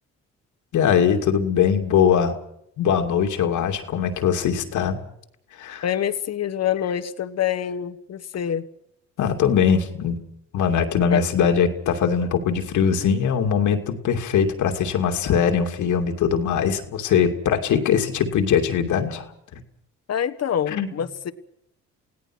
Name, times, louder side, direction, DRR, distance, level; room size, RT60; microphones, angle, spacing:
voice 1, 0.7-2.4 2.8-5.0 5.6-5.8 9.2-10.2 10.5-19.3 20.7-20.9, left 7 dB, 80° left, 5 dB, 2.7 m, -21 dB
voice 2, 5.8-8.7 11.1-11.2 20.1-21.3, left 9 dB, 55° left, 9 dB, 1.5 m, -26 dB
29.0 x 17.5 x 6.3 m, 0.75 s
cardioid pair, 90°, 30 cm